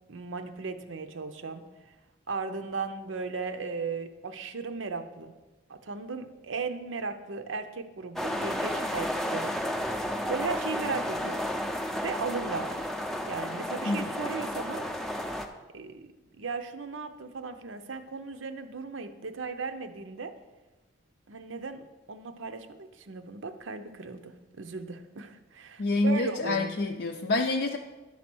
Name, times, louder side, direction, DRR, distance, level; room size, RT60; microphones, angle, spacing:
voice 1, 0.1-1.6 2.3-5.3 5.7-9.6 10.3-11.4 12.0-12.7 13.3-14.9 15.7-16.1 16.4-20.4 21.3-26.7, right 4 dB, 85° right, 8 dB, 0.7 m, -36 dB
sound 1, 8.2-15.5, equal, ahead, 0.5 m, -32 dB
voice 2, 25.8-27.8, left 2 dB, 60° left, 2 dB, 0.5 m, -27 dB
11.0 x 4.3 x 6.1 m, 1.2 s
head